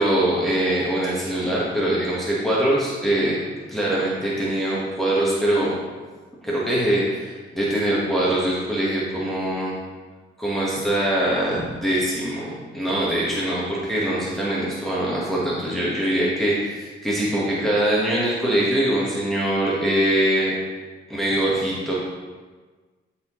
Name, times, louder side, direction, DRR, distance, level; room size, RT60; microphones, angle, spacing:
voice 1, 0.0-3.4 3.7-5.7 6.4-9.7 10.4-20.6 21.1-21.9, right 1 dB, ahead, -7 dB, 1.3 m, -23 dB
12.0 x 4.3 x 3.0 m, 1.4 s
cardioid pair, 130°, 20 cm